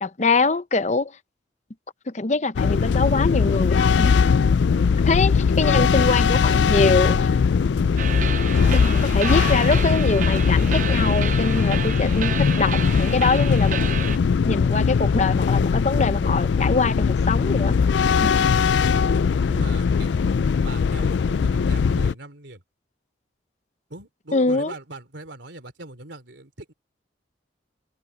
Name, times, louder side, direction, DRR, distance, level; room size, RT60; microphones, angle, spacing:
voice 1, 0.0-1.1 2.1-4.3 4.9-7.3 8.7-13.9 14.5-17.8 18.2-18.5 24.3-24.7, left 3 dB, 35° left, 0.7 m, -24 dB
sound 1, 2.6-22.1, left 5 dB, 65° left, 0.4 m, -20 dB
sound 2, 8.0-14.2, right 8 dB, 40° right, 0.5 m, -31 dB
voice 2, 19.5-20.2 20.6-22.6 23.9-26.7, right 2 dB, 70° right, 3.3 m, -40 dB
head